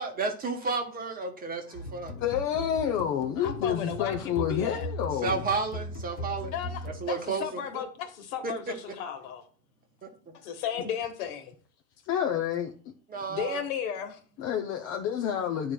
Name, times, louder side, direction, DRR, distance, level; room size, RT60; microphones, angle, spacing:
voice 1, 0.0-2.1 5.2-6.5 6.8-7.8 8.4-8.5 10.0-10.1 13.1-13.6, right 4 dB, 20° right, 1.0 m, -32 dB
sound 1, 1.7-7.4, left 1 dB, 90° left, 1.0 m, -38 dB
voice 2, 2.2-5.4 12.1-12.9 14.4-15.7, left 9 dB, 30° left, 0.5 m, -29 dB
voice 3, 3.4-4.9 6.5-9.4 10.4-11.5 13.3-14.2, left 8 dB, 60° left, 1.4 m, -34 dB
10.5 x 4.6 x 2.2 m
hypercardioid pair, 115°, 48 cm